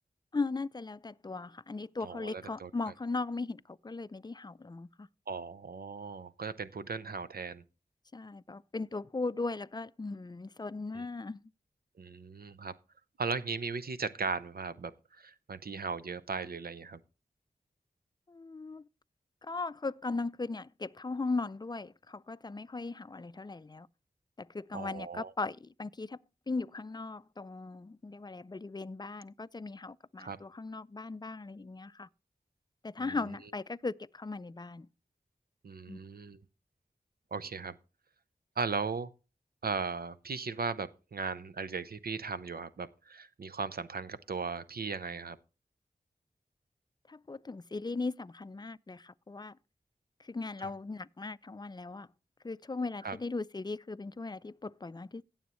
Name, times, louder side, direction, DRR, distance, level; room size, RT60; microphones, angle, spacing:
voice 1, 0.3-5.1 8.1-11.5 18.3-18.8 19.4-23.9 24.4-26.2 26.5-32.1 32.8-34.9 35.9-36.0 47.1-49.6 50.2-52.1 52.4-55.2, left 3 dB, 25° left, 0.4 m, -38 dB
voice 2, 2.0-2.7 5.3-7.6 12.0-12.7 13.2-17.0 24.7-25.3 30.2-30.4 33.0-33.1 35.6-36.4 37.3-37.8 38.6-39.1 39.6-45.4 50.6-50.7 53.0-53.2, right 5 dB, 70° right, 0.7 m, -37 dB
16.0 x 7.2 x 3.1 m
cardioid pair, 40°, 16 cm